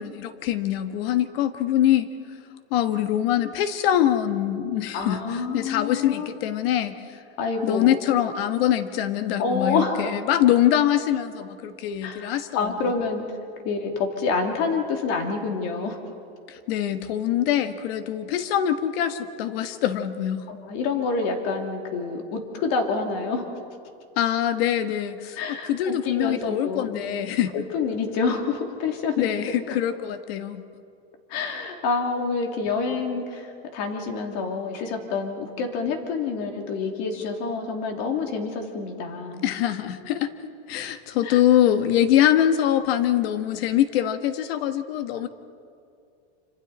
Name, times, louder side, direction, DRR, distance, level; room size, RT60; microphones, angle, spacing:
voice 1, 0.0-2.1 2.7-7.0 7.6-12.7 16.5-20.5 24.2-27.5 29.2-30.6 39.4-45.3, left 11 dB, 65° left, 10 dB, 1.4 m, -24 dB
voice 2, 4.9-6.3 7.4-7.9 9.4-10.1 12.0-12.3 12.5-13.2 13.6-16.0 20.5-23.5 25.4-27.0 27.5-29.3 29.7-29.8 31.3-39.4 41.2-41.4, left 4 dB, 50° left, 3 dB, 3.0 m, -27 dB
27.0 x 26.0 x 4.2 m, 2.4 s
supercardioid pair, 145°, 32 cm